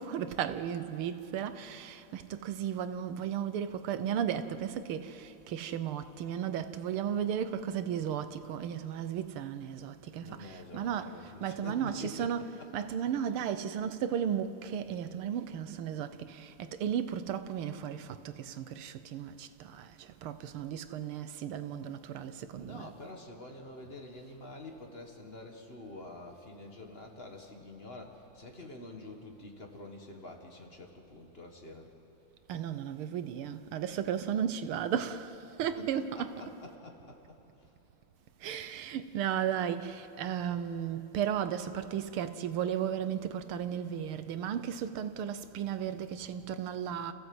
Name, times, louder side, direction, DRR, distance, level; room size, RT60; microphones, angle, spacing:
voice 1, 0.0-12.4 12.7-22.8 32.5-36.3 38.4-47.1, right 9 dB, 90° right, 1.8 m, -35 dB
voice 2, 10.2-12.9 22.5-31.9 35.6-37.7, left 2 dB, 30° left, 1.8 m, -47 dB
30.0 x 15.0 x 7.9 m
omnidirectional pair, 2.3 m